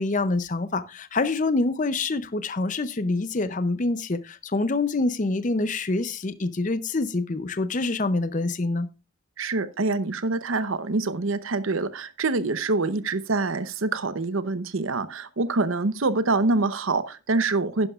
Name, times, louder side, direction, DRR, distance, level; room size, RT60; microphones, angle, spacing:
voice 1, 0.0-8.9, left 3 dB, 40° left, 0.6 m, -26 dB
voice 2, 9.4-17.9, right 3 dB, 80° right, 0.8 m, -25 dB
11.0 x 11.0 x 2.4 m
head